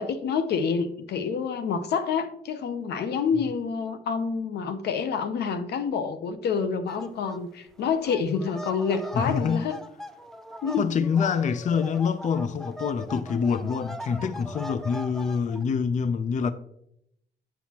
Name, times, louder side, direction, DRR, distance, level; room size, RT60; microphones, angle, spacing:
voice 1, 0.0-9.8 10.6-10.8, left 6 dB, 85° left, 0.7 m, -28 dB
sound 1, 6.9-7.4 7.7-15.6, equal, ahead, 0.6 m, -40 dB
voice 2, 9.1-9.7 10.8-16.5, left 6 dB, 50° left, 0.4 m, -26 dB
7.5 x 7.0 x 2.8 m
cardioid pair, 80°, 17 cm